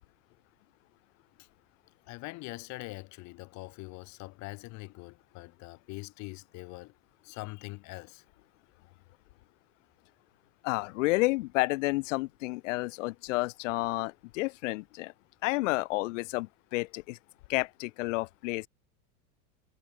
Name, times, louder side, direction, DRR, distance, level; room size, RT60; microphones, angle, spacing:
voice 1, 2.1-6.9 7.2-8.2, left 24 dB, 40° left, 4.2 m, -43 dB
voice 2, 10.6-15.1 15.4-17.2 17.5-18.7, left 22 dB, 60° left, 1.6 m, -30 dB
supercardioid pair, 160°, 42 cm